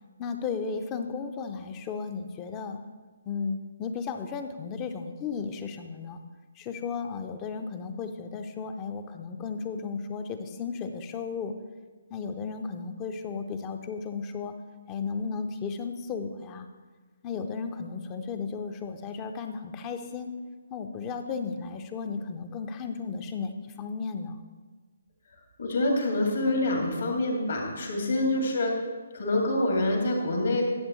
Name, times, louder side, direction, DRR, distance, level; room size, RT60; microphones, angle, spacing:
voice 1, 0.2-2.8 3.3-6.2 6.6-11.5 12.1-14.5 14.9-16.7 17.2-20.3 20.7-23.5 23.8-24.5, left 5 dB, 25° left, 7 dB, 0.6 m, -34 dB
voice 2, 25.6-28.7 29.1-30.6, left 1 dB, 65° left, 0 dB, 2.4 m, -26 dB
11.5 x 7.3 x 3.1 m, 1.4 s
figure-of-eight pair, 145°, 0 cm